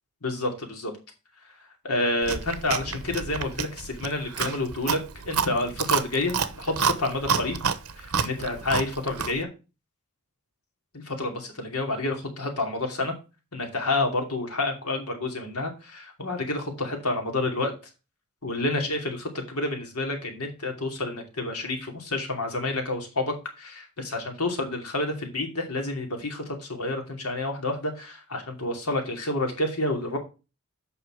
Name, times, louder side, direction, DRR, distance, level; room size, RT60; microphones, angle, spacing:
voice 1, 0.2-0.9 1.8-5.0 5.3-7.6 8.0-9.5 10.9-13.1 13.5-17.7 18.4-30.2, left 2 dB, 85° left, 3 dB, 2.7 m, -29 dB
Chewing mastication, 2.2-9.4, right 6 dB, 85° right, 0.9 m, -29 dB
8.2 x 5.7 x 4.9 m, 0.30 s
head